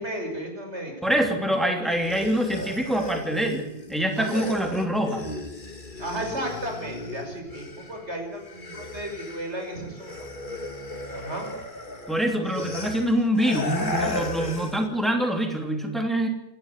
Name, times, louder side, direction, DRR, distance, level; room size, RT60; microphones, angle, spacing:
voice 1, 0.0-1.1 4.2-4.5 6.0-10.3 11.1-11.5, right 1 dB, 80° right, 3 dB, 6.3 m, -34 dB
voice 2, 1.0-5.3 12.1-16.3, right 1 dB, ahead, 3 dB, 3.0 m, -25 dB
sound 1, 1.9-8.1 8.4-14.9, left 2 dB, 45° left, 2.5 m, -35 dB
27.5 x 12.0 x 10.0 m, 0.86 s
omnidirectional pair, 1.1 m